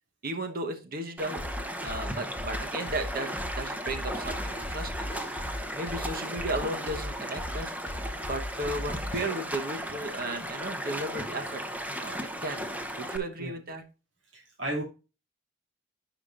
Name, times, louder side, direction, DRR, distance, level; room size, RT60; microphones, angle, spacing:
voice 1, 0.2-1.4 1.8-5.1 5.7-7.7 8.2-11.6 12.0-12.2 12.4-12.7 13.0-13.8, right 1 dB, 55° right, 6 dB, 1.1 m, -34 dB
Stream, 1.2-13.2, equal, 10° right, 0.9 m, -36 dB
sound 1, 1.4-9.4, left 1 dB, 30° left, 1.0 m, -38 dB
voice 2, 14.3-14.8, right 1 dB, 75° right, -3 dB, 2.5 m, -33 dB
15.5 x 5.1 x 2.5 m, 0.32 s
head